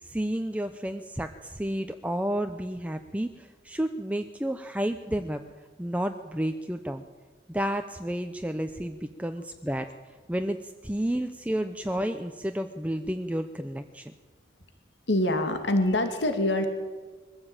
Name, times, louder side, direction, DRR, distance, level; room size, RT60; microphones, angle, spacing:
voice 1, 0.0-7.0 7.5-14.1, right 1 dB, 10° right, 7 dB, 0.7 m, -31 dB
voice 2, 15.1-16.7, left 1 dB, 70° left, 7 dB, 2.3 m, -25 dB
22.5 x 15.0 x 8.9 m, 1.4 s
head